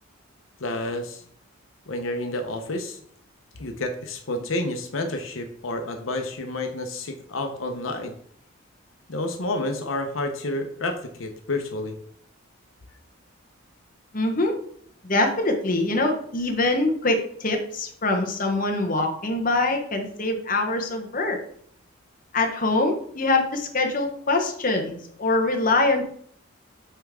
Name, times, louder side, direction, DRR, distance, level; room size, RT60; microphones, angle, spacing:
voice 1, 0.6-1.2 1.9-3.0 3.6-8.1 9.1-11.9, left 2 dB, 75° left, 5 dB, 0.8 m, -29 dB
voice 2, 14.1-14.5 15.0-21.4 22.3-26.0, left 2 dB, 40° left, 3 dB, 0.9 m, -24 dB
8.6 x 3.5 x 3.6 m, 0.62 s
head